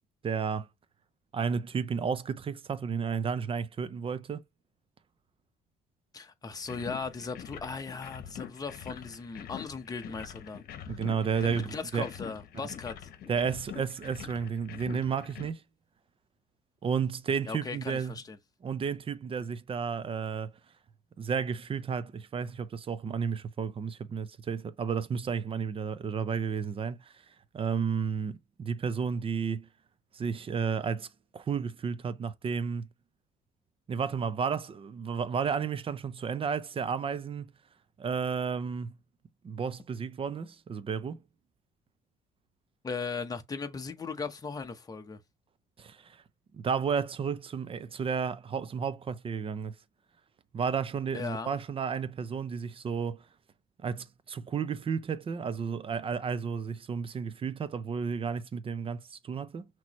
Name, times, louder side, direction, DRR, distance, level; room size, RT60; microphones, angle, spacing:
voice 1, 0.2-0.7 1.3-4.4 10.9-12.1 12.5-12.7 13.3-15.6 16.8-18.1 18.6-20.5 21.2-29.7 30.1-31.1 31.3-32.9 33.9-37.5 38.0-39.0 39.4-41.2 45.8-46.2 46.5-49.7 50.5-53.3 53.8-59.7, right 6 dB, 35° right, 0.6 m, -32 dB
voice 2, 6.1-10.6 11.4-13.1 17.5-18.4 42.8-45.2 51.1-51.5, left 4 dB, 20° left, 0.9 m, -38 dB
sound 1, 6.6-15.5, left 9 dB, 65° left, 0.9 m, -45 dB
5.9 x 3.0 x 3.0 m
cardioid pair, 110°, 17 cm